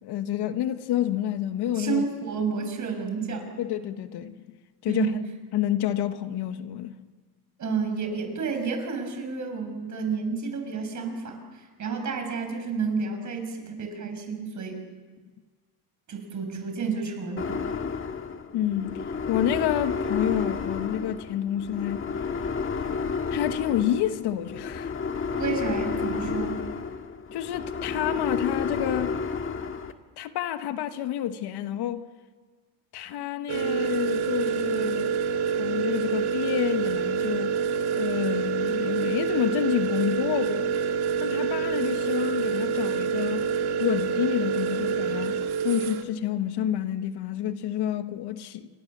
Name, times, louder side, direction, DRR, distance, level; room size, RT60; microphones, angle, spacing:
voice 1, 0.0-2.0 3.6-4.3 4.8-5.1 5.5-6.9 18.5-19.0 19.3-22.1 23.3-24.9 27.3-29.2 30.2-32.0 32.9-35.1 35.6-37.5 37.9-40.7 41.2-43.5 43.8-45.4 45.6-48.7, left 11 dB, 70° left, 1.4 m, -29 dB
voice 2, 1.8-3.6 4.9-5.2 7.6-14.8 16.1-17.7 25.4-26.6, right 5 dB, 45° right, 6.0 m, -30 dB
sound 1, 17.4-29.9, left 5 dB, 30° left, 1.8 m, -31 dB
sound 2, 33.5-46.0, right 6 dB, 65° right, 2.0 m, -27 dB
28.0 x 24.0 x 7.4 m
cardioid pair, 105°, 41 cm